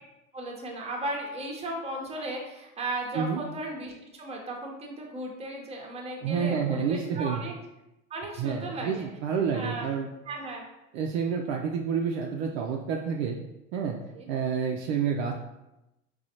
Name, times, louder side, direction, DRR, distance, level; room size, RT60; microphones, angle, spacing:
voice 1, 0.3-7.5 8.1-9.1 9.5-9.9 10.3-10.6 14.1-14.3, right 1 dB, 15° right, 0 dB, 0.8 m, -36 dB
voice 2, 6.2-7.4 8.4-10.1 10.9-13.4 13.7-14.0 14.3-15.3, right 6 dB, 50° right, 0 dB, 0.5 m, -29 dB
4.8 x 2.3 x 2.8 m, 0.93 s
figure-of-eight pair, 75°, 41 cm